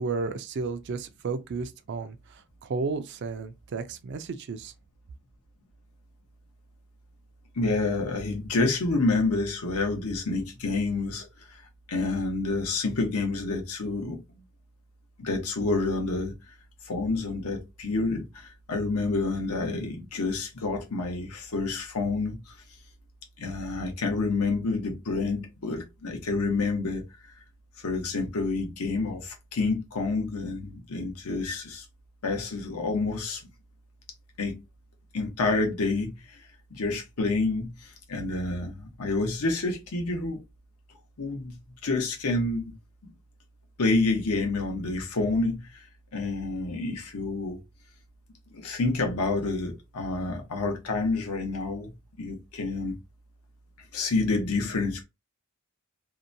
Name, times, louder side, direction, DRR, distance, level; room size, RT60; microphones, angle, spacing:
voice 1, 0.0-4.7, right 4 dB, 50° right, 0.4 m, -33 dB
voice 2, 7.5-11.6 11.9-14.2 15.2-16.3 16.8-22.5 23.4-27.0 27.8-31.8 32.2-33.4 34.4-34.6 35.1-36.4 36.7-40.4 41.2-42.7 43.8-45.9 46.1-47.6 48.5-51.9 52.2-52.9 53.9-55.0, left 3 dB, 90° left, 0.8 m, -28 dB
2.7 x 2.1 x 2.6 m
head